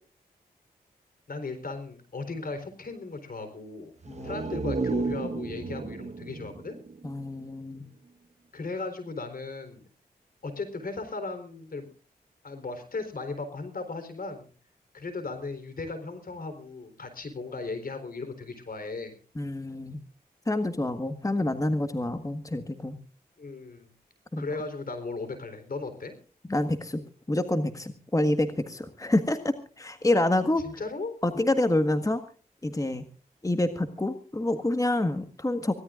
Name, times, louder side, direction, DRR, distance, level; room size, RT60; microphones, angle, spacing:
voice 1, 1.3-3.9 4.2-6.8 8.5-9.8 10.4-11.9 12.4-14.5 14.9-19.2 21.4-21.5 23.4-23.9 24.4-26.1 30.6-31.2, left 3 dB, 60° left, 9 dB, 4.0 m, -36 dB
sound 1, 4.0-7.7 8.1-8.2, right 3 dB, 45° right, 1.1 m, -33 dB
voice 2, 4.1-4.4 7.0-7.8 19.3-20.0 20.4-23.0 24.3-24.4 26.5-27.0 27.3-30.6 31.2-32.2 32.6-33.0 33.4-35.7, left 1 dB, 20° left, 8 dB, 1.6 m, -27 dB
24.5 x 17.0 x 2.5 m, 0.40 s
cardioid pair, 45°, 16 cm